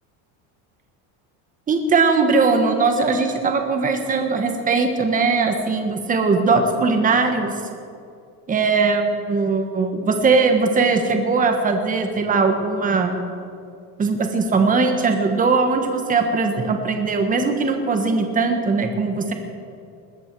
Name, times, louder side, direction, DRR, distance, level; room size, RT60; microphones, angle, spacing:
voice 1, 1.7-7.5 8.5-13.3 14.0-19.3, right 4 dB, 20° right, 5 dB, 1.4 m, -20 dB
21.0 x 14.5 x 4.7 m, 2.4 s
cardioid pair, 170°, 45 cm